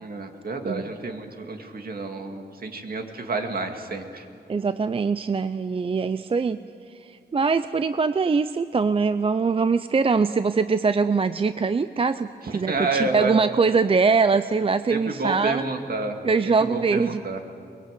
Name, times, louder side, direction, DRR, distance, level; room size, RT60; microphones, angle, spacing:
voice 1, 0.0-4.3 12.4-13.4 14.9-16.2 16.6-17.4, right 3 dB, 60° right, 4 dB, 2.2 m, -29 dB
voice 2, 4.5-6.6 6.9-15.6 16.2-17.2, right 4 dB, 30° right, 12 dB, 0.5 m, -23 dB
23.0 x 22.0 x 8.3 m, 2.6 s
wide cardioid pair, 125°, 18 cm